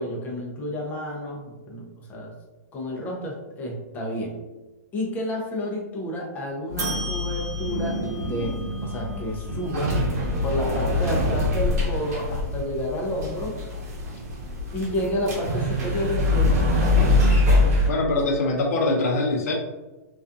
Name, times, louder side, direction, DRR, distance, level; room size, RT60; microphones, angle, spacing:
voice 1, 0.0-2.3 2.7-4.4 4.9-10.0 10.4-13.6 14.7-17.0, equal, 20° left, -1 dB, 0.5 m, -30 dB
sound 1, 6.7-17.9, left 2 dB, 65° right, 0.9 m, -24 dB
voice 2, 17.9-19.5, left 2 dB, 65° left, 1 dB, 0.6 m, -23 dB
2.4 x 2.4 x 2.4 m, 1.2 s
hypercardioid pair, 145°, 9 cm